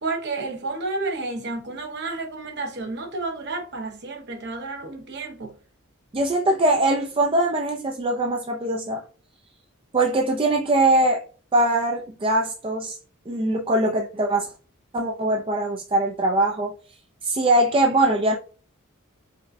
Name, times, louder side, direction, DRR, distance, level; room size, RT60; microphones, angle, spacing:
voice 1, 0.0-5.5, right 3 dB, 55° right, 0.8 m, -31 dB
voice 2, 6.1-9.0 9.9-11.2 11.5-13.0 13.3-14.5 14.9-16.7 17.2-18.4, right 2 dB, 25° right, 0.4 m, -22 dB
5.0 x 2.2 x 2.6 m
head